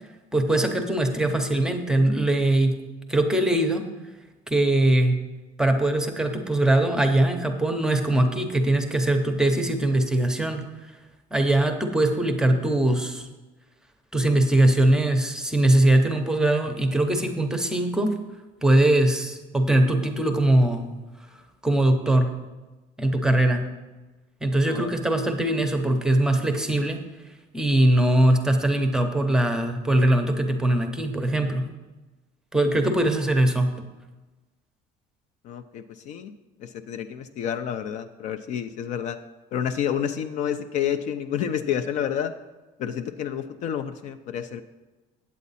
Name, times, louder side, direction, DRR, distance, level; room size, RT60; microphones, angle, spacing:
voice 1, 0.3-2.8 3.1-3.9 4.5-5.2 5.6-10.7 11.3-13.3 14.1-18.1 18.6-20.8 21.6-22.3 23.0-23.7 24.4-27.0 27.5-31.6 32.5-33.7, right 1 dB, 5° right, 5 dB, 0.7 m, -21 dB
voice 2, 35.4-36.3 36.6-39.2 39.5-42.3 42.8-44.6, left 9 dB, 50° left, 9 dB, 0.4 m, -29 dB
8.3 x 8.3 x 4.1 m, 1.2 s
cardioid pair, 160°, 16 cm